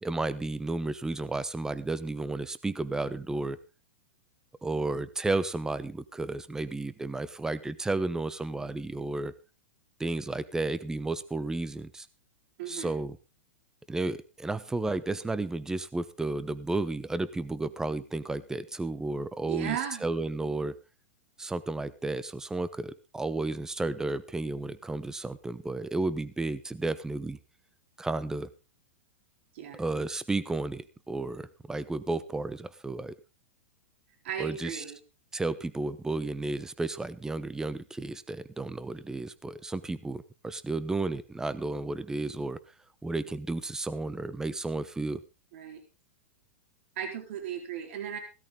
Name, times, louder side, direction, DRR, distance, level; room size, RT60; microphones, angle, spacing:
voice 1, 0.0-3.6 4.6-9.3 10.0-12.1 12.7-13.2 13.9-19.8 20.0-20.7 21.4-27.4 28.0-28.5 29.7-33.1 34.4-34.8 35.3-42.6 43.0-45.2, right 2 dB, 10° right, 15 dB, 1.0 m, -32 dB
voice 2, 12.6-12.9 19.5-20.0 29.5-29.8 34.2-35.0 45.5-45.8 47.0-48.2, right 9 dB, 60° right, 5 dB, 4.0 m, -35 dB
16.5 x 13.0 x 3.8 m, 0.31 s
hypercardioid pair, 120°, 7 cm